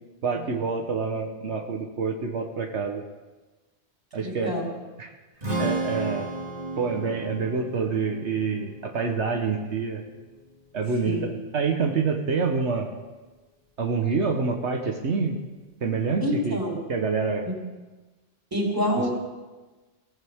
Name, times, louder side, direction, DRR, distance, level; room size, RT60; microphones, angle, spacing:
voice 1, 0.2-3.0 4.1-4.6 5.0-5.1 5.6-6.3 6.8-10.0 10.7-12.9 13.8-15.4 15.8-17.5, right 5 dB, 80° right, 2 dB, 1.4 m, -27 dB
voice 2, 4.2-4.6 11.0-11.2 16.2-16.8 17.5-17.6 18.5-19.2, equal, 20° right, -4 dB, 3.8 m, -27 dB
Strum, 5.4-11.7, right 2 dB, 35° right, 2.4 m, -35 dB
21.5 x 14.5 x 3.6 m, 1.2 s
omnidirectional pair, 1.2 m